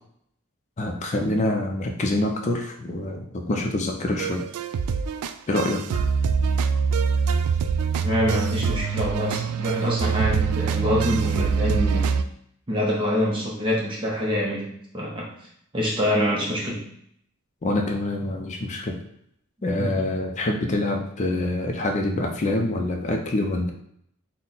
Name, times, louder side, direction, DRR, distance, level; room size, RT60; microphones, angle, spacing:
voice 1, 0.8-4.5 5.5-5.8 17.6-19.0 19.6-23.7, left 1 dB, 35° left, 2 dB, 0.4 m, -26 dB
sound 1, 4.2-12.2, right 6 dB, 85° right, 0.3 m, -24 dB
voice 2, 8.0-12.1 12.7-15.3 15.7-16.9 19.8-20.0, equal, 25° right, -4 dB, 0.6 m, -25 dB
4.1 x 2.1 x 3.9 m, 0.71 s
head